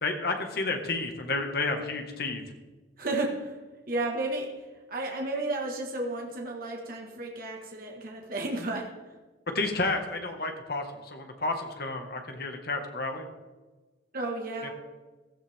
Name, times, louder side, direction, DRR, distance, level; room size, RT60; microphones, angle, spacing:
voice 1, 0.0-2.4 9.5-13.3 14.6-14.7, left 3 dB, 55° left, 4 dB, 1.7 m, -31 dB
voice 2, 3.0-3.6 3.9-9.1 14.1-14.7, right 2 dB, 50° right, 0 dB, 1.7 m, -33 dB
15.5 x 13.5 x 3.6 m, 1.3 s
head